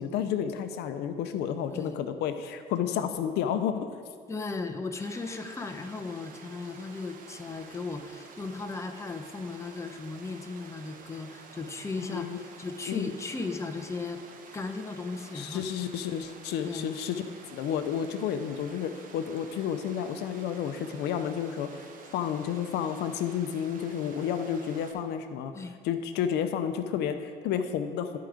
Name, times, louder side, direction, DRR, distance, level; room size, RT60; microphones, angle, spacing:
voice 1, 0.0-3.9 12.1-12.4 12.9-13.1 15.3-17.2 17.5-21.8 22.1-25.5 25.8-28.2, left 8 dB, 80° left, 9 dB, 0.6 m, -31 dB
voice 2, 4.3-14.2 14.5-15.6 16.6-16.9 25.5-25.8, left 3 dB, 15° left, 6 dB, 0.7 m, -36 dB
Water, 5.0-24.9, right 4 dB, 55° right, 1.0 m, -50 dB
12.0 x 4.7 x 5.0 m, 2.1 s
cardioid pair, 110°, 17 cm